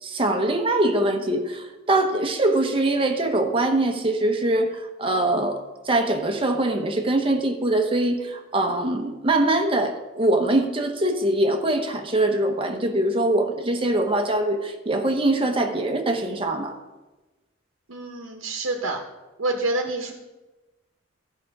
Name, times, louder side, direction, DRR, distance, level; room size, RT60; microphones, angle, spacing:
voice 1, 0.0-16.8, right 1 dB, 25° right, 4 dB, 1.0 m, -23 dB
voice 2, 17.9-19.0 19.4-20.1, right 2 dB, 80° right, 2 dB, 1.0 m, -27 dB
13.5 x 5.8 x 4.8 m, 1.1 s
head